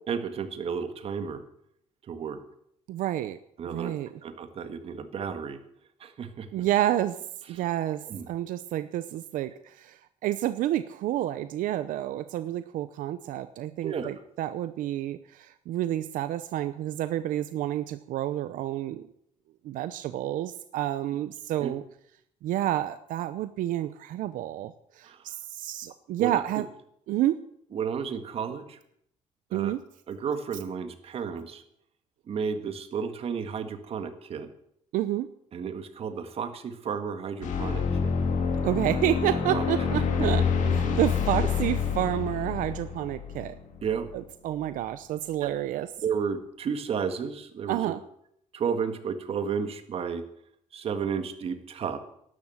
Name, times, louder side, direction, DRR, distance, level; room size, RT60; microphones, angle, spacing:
voice 1, 0.1-1.4 2.0-2.4 3.6-3.9 4.2-5.6 6.0-6.6 7.5-7.6 8.0-8.3 13.8-14.1 21.6-21.7 25.0-25.3 26.2-26.4 27.7-28.8 29.5-29.7 30.1-31.6 32.3-34.5 35.5-38.1 39.5-39.9 40.9-41.0 43.8-44.1 45.4-45.5 46.0-47.9 48.5-50.2 50.7-52.0, right 6 dB, 45° right, 8 dB, 1.8 m, -32 dB
voice 2, 2.9-3.4 3.7-4.1 6.5-7.2 7.5-19.1 19.6-21.8 22.4-26.7 27.1-27.4 29.5-29.8 34.9-35.3 38.6-40.4 40.7-43.6 44.1-45.9 47.7-48.0, right 13 dB, 85° right, 12 dB, 0.7 m, -29 dB
sound 1, 37.4-44.1, left 6 dB, 70° left, 2.7 m, -27 dB
12.0 x 11.5 x 7.9 m, 0.70 s
cardioid pair, 140°, 13 cm